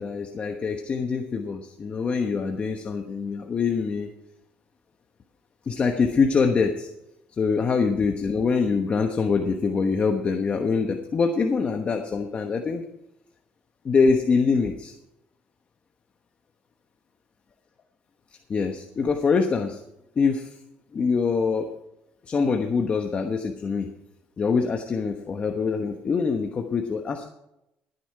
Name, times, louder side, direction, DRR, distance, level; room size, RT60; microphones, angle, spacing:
voice 1, 0.0-4.1 5.7-6.9 7.4-12.8 13.8-14.9 18.5-19.8 20.2-20.5 20.9-21.7 22.3-23.9 24.4-27.2, left 5 dB, 35° left, 4 dB, 1.1 m, -24 dB
14.0 x 9.8 x 4.8 m, 0.85 s
cardioid pair, 110°, 4 cm